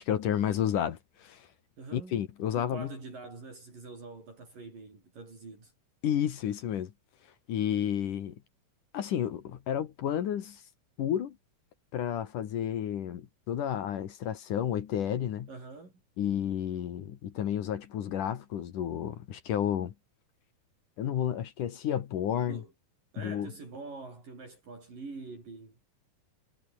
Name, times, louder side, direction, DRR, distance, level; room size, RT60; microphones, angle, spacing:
voice 1, 0.0-1.5 1.9-2.9 6.0-6.9 7.5-8.4 8.9-10.6 11.0-11.4 11.9-15.5 16.2-19.9 21.0-22.6 23.2-23.5, left 10 dB, 60° left, 3.0 m, -31 dB
voice 2, 1.8-2.2 2.5-5.7 15.5-16.0 22.4-22.7 23.1-25.9, right 3 dB, 60° right, 9.5 m, -45 dB
omnidirectional pair, 4.4 m